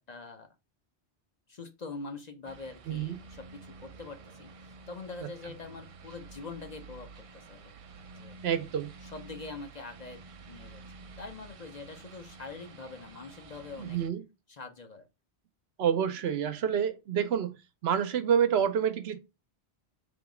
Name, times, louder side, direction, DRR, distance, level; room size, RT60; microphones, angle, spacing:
voice 1, 0.1-0.5 1.5-7.7 8.1-8.4 9.0-10.2 10.5-10.8 11.2-14.0 14.5-15.1, left 3 dB, 45° left, 0.7 m, -44 dB
sound 1, 2.4-14.1, right 4 dB, 55° right, 0.4 m, -50 dB
voice 2, 2.9-3.2 5.2-5.3 8.4-8.9 13.8-14.2 15.8-19.2, right 8 dB, 75° right, 0.9 m, -28 dB
3.6 x 3.0 x 4.7 m
omnidirectional pair, 1.1 m